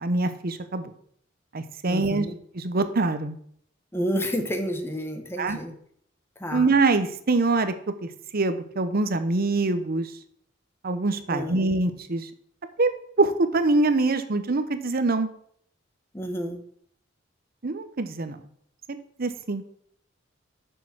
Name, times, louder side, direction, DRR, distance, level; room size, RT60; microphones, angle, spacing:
voice 1, 0.0-0.9 1.5-2.2 2.5-3.4 5.4-5.6 6.5-10.1 10.8-12.3 12.8-12.9 13.2-15.3 17.6-18.4 18.9-19.6, right 3 dB, 50° right, 10 dB, 0.8 m, -24 dB
voice 2, 1.9-2.4 3.9-5.7 6.4-6.7 11.3-11.7 16.1-16.6, equal, 10° left, 5 dB, 1.1 m, -30 dB
6.7 x 6.6 x 6.0 m, 0.65 s
head